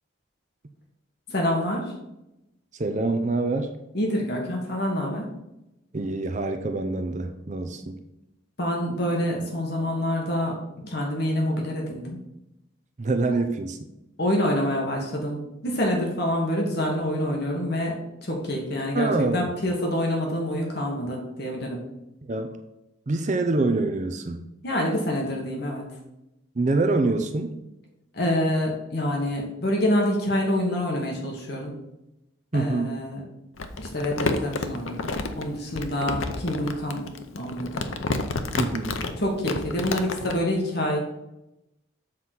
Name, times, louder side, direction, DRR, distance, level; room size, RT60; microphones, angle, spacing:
voice 1, 1.3-1.9 3.9-5.3 8.6-10.5 10.8-12.2 14.2-18.0 18.2-21.8 24.6-25.8 28.1-31.7 32.5-33.2 33.8-37.0 37.3-37.9 39.2-41.0, left 1 dB, 55° left, -1 dB, 1.6 m, -26 dB
voice 2, 2.7-3.7 5.9-8.0 13.0-13.9 18.9-19.5 22.3-22.6 23.1-24.4 26.6-27.6 32.5-33.0 38.6-39.0, right 3 dB, 35° right, 6 dB, 0.5 m, -25 dB
Crumpling crinkling, 33.6-40.4, left 3 dB, 80° left, 0.7 m, -30 dB
7.4 x 4.0 x 6.0 m, 0.90 s
head